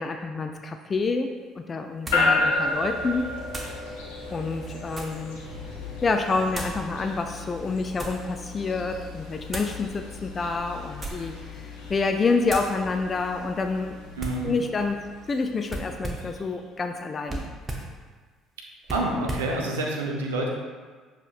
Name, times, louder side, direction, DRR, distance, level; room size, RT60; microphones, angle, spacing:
voice 1, 0.0-3.3 4.3-5.5 6.0-14.0 14.4-17.5, left 4 dB, 35° left, 6 dB, 0.3 m, -28 dB
sound 1, 0.9-1.0 2.1-2.3 3.5-3.8 4.5-5.3 6.5-6.8 7.6-8.3 9.5-9.8 10.9-11.4 11.8-12.0 12.5-12.8 14.2-14.5 15.7-16.4 17.3-17.9 18.8-19.5, right 1 dB, 25° right, 0.8 m, -35 dB
sound 2, 2.1-16.4, left 3 dB, 80° left, 0.8 m, -33 dB
voice 2, 14.2-14.5 18.9-20.5, right 2 dB, 80° right, 0 dB, 0.5 m, -28 dB
6.8 x 2.9 x 2.4 m, 1.4 s
hypercardioid pair, 55°, 0 cm